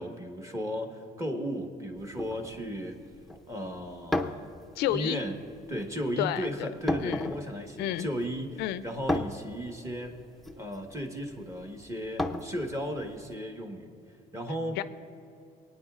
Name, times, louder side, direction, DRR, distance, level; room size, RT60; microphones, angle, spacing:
voice 1, 0.0-3.0 3.5-4.5 4.9-5.4 5.7-10.2 10.6-13.9 14.3-14.8, equal, 15° right, 3 dB, 1.4 m, -35 dB
sound 1, 2.0-13.3, left 1 dB, ahead, 0.6 m, -36 dB
voice 2, 4.8-5.2 6.2-6.7 7.0-7.3 7.8-8.1 8.6-8.8 14.8-14.9, left 12 dB, 90° left, 14 dB, 0.4 m, -30 dB
25.0 x 9.3 x 2.5 m, 2.6 s
cardioid pair, 110°, 17 cm